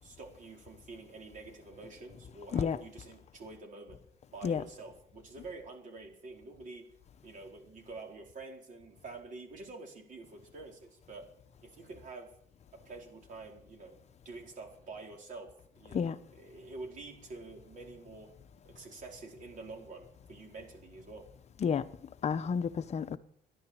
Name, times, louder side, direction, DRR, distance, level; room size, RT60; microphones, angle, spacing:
voice 1, 0.0-4.0 4.3-6.8 7.2-11.3 11.6-12.3 12.7-14.0 14.2-15.5 15.8-18.3 18.6-21.2, right 3 dB, 50° right, 4.5 m, -47 dB
voice 2, 22.2-23.2, left 6 dB, 40° left, 0.9 m, -30 dB
13.0 x 11.0 x 8.6 m
cardioid pair, 110°, 17 cm